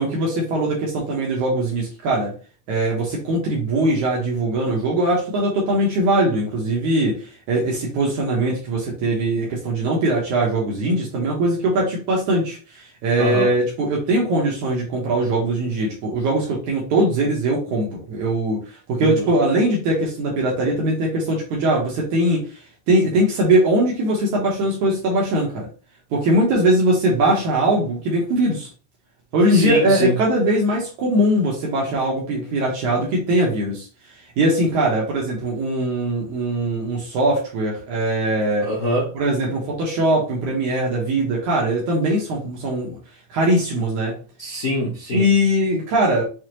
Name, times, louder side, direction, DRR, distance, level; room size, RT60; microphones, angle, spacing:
voice 1, 0.0-2.3 2.7-22.5 22.9-25.7 26.1-28.7 29.3-33.9 34.4-38.7 39.1-43.0 43.3-44.2 45.1-46.2, right 1 dB, 70° right, 2.4 m, -21 dB
voice 2, 29.5-30.1 38.6-39.1 44.4-45.3, left 1 dB, 90° left, 0.7 m, -24 dB
6.3 x 2.7 x 3.0 m
omnidirectional pair, 3.7 m